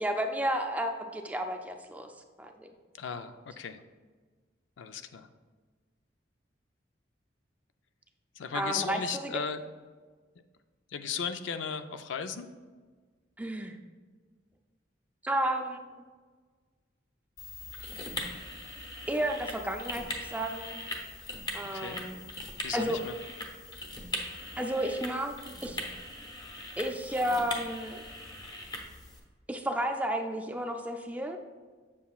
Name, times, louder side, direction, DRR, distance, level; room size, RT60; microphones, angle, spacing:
voice 1, 0.0-2.1 2.4-2.7 8.5-9.3 13.4-13.8 15.2-15.8 19.1-20.9 21.5-22.2 22.7-23.0 24.6-25.3 25.6-25.8 26.8-28.0 29.5-31.4, right 1 dB, 10° right, 4 dB, 0.4 m, -32 dB
voice 2, 3.0-3.8 4.8-5.3 8.4-9.6 10.9-12.5 21.7-22.0 22.6-23.1, left 6 dB, 85° left, 9 dB, 0.4 m, -36 dB
sound 1, 17.4-29.2, left 1 dB, 20° left, 0.9 m, -40 dB
7.4 x 6.9 x 2.3 m, 1.4 s
head